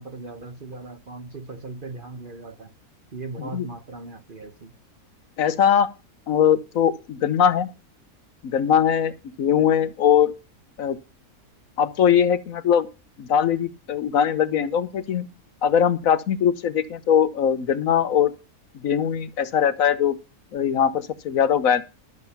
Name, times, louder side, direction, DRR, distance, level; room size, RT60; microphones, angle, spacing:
voice 1, 0.0-2.7 3.1-4.7, right 3 dB, 40° right, 1.0 m, -38 dB
voice 2, 5.4-5.9 6.3-7.7 8.4-9.1 9.4-10.3 10.8-11.0 11.8-12.9 13.2-15.3 15.6-18.3 18.8-20.1 20.5-21.8, left 8 dB, 65° left, 1.2 m, -21 dB
12.0 x 8.0 x 5.7 m
omnidirectional pair, 1.6 m